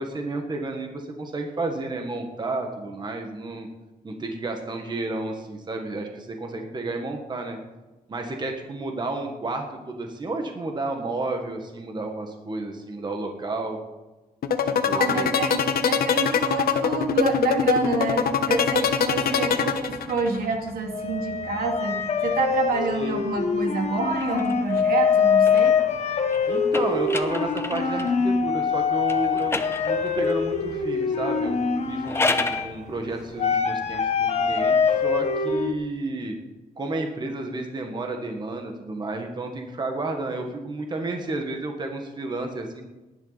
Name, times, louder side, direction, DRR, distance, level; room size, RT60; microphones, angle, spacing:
voice 1, 0.0-3.7 4.0-7.6 8.1-13.8 14.6-15.3 19.1-19.7 22.9-23.2 26.5-31.6 31.9-36.4 36.8-42.8, right 2 dB, 30° right, 3 dB, 1.6 m, -31 dB
sound 1, 14.4-20.4, left 7 dB, 85° left, 1.2 m, -22 dB
voice 2, 14.9-25.8, right 4 dB, 75° right, 2 dB, 2.4 m, -28 dB
sound 2, 17.1-18.5 18.7-19.5 19.8-35.7, left 6 dB, 45° left, 1.2 m, -24 dB
sound 3, 24.1-28.2 29.0-30.4 31.8-32.7, left 2 dB, 15° left, 0.8 m, -32 dB
18.5 x 11.0 x 4.1 m, 1.1 s
wide cardioid pair, 165°, 15 cm